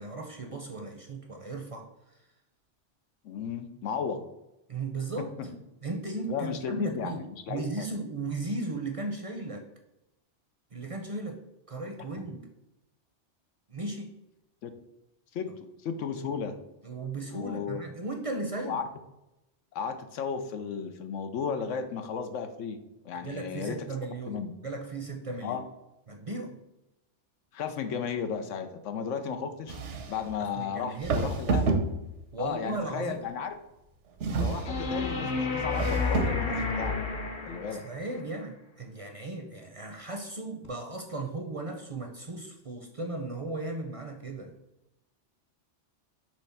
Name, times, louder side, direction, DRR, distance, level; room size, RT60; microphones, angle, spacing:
voice 1, 0.0-2.3 4.7-5.6 5.8-7.2 7.5-9.7 10.7-11.4 11.7-12.5 13.7-14.1 16.8-18.8 23.1-25.6 26.1-26.6 30.4-31.2 32.3-33.2 37.4-44.5, right 2 dB, 35° right, 4 dB, 0.6 m, -36 dB
voice 2, 3.2-4.2 6.3-7.9 14.6-14.7 15.3-15.5 15.8-16.6 17.3-17.8 18.6-18.8 19.7-22.8 23.0-23.9 24.3-24.5 25.4-25.6 27.5-29.8 30.1-31.7 32.4-33.5 34.3-37.0 37.5-37.8, left 6 dB, 90° left, 8 dB, 1.1 m, -34 dB
sound 1, 29.7-30.3 31.0-32.3 34.2-34.9 35.7-36.5, right 3 dB, 75° right, 1.1 m, -29 dB
sound 2, 34.6-38.0 40.6-40.7, left 4 dB, 55° left, 1.2 m, -30 dB
6.1 x 3.2 x 5.6 m, 0.92 s
omnidirectional pair, 1.2 m